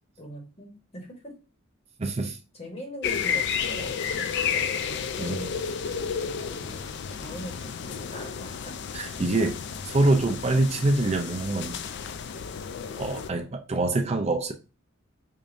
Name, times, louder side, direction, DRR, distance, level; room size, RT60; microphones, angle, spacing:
voice 1, 0.2-1.3 2.5-5.7 6.2-8.7, equal, 30° left, 1.3 m, -42 dB
voice 2, 2.0-2.4 5.2-5.5 8.9-11.8 13.0-14.5, right 2 dB, 30° right, 0.4 m, -25 dB
sound 1, 3.0-13.3, left 7 dB, 55° left, 0.4 m, -32 dB
5.0 x 2.6 x 2.5 m
head